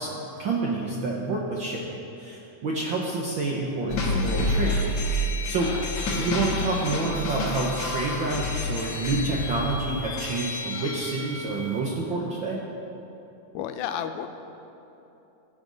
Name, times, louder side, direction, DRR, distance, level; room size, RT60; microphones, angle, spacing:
voice 1, 0.0-4.8 5.5-12.6, right 3 dB, 65° right, -3 dB, 1.2 m, -28 dB
sound 1, 3.9-11.8, left 1 dB, 55° left, 1.5 m, -29 dB
voice 2, 5.6-6.4 13.5-14.3, left 9 dB, 90° left, 8 dB, 2.1 m, -34 dB
19.0 x 7.7 x 4.0 m, 3.0 s
omnidirectional pair, 3.5 m